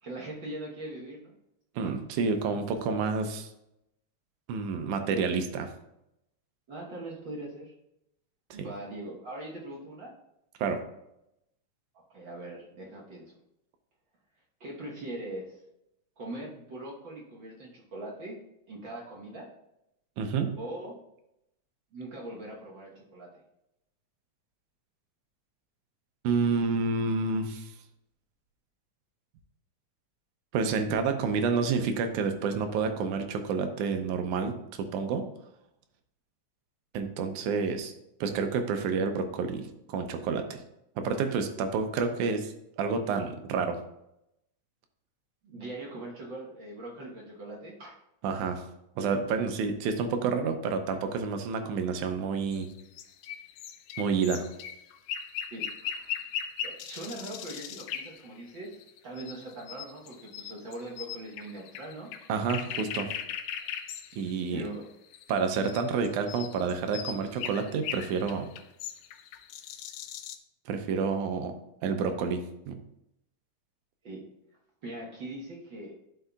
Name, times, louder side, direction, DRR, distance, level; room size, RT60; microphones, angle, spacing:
voice 1, 0.0-1.3 1.8-2.0 6.7-7.7 8.5-10.1 12.1-13.4 14.6-15.6 16.2-18.4 18.7-19.5 20.6-21.0 21.9-23.3 45.4-48.0 55.5-55.7 56.6-58.7 59.0-62.1 64.5-64.9 74.0-74.2 74.8-75.9, right 1 dB, 55° right, -3 dB, 1.4 m, -41 dB
voice 2, 1.8-3.5 4.5-5.7 8.6-8.7 10.6-10.8 20.2-20.5 26.2-27.7 30.5-35.3 36.9-37.9 38.2-40.6 41.0-43.8 48.2-48.6 49.0-52.7 54.0-54.5 62.3-63.1 64.1-64.6 65.3-68.5 70.7-71.5 71.8-72.8, right 5 dB, 85° right, 6 dB, 2.2 m, -29 dB
sound 1, 52.5-70.4, left 9 dB, 80° left, 2.0 m, -39 dB
11.5 x 5.5 x 2.3 m, 0.84 s
omnidirectional pair, 3.5 m